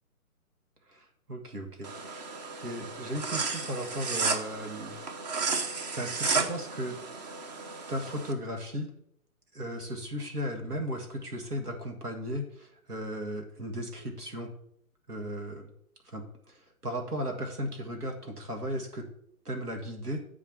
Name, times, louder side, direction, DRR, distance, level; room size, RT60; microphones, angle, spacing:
voice 1, 0.9-2.4 2.6-5.0 5.6-7.0 7.9-8.9 9.5-14.5 15.1-15.7 16.0-19.1 19.5-20.2, equal, 90° right, 3 dB, 1.9 m, -36 dB
sound 1, 1.8-8.3, right 4 dB, 30° right, 0.8 m, -33 dB
8.6 x 4.8 x 6.2 m, 0.71 s
figure-of-eight pair, 135°, 45 cm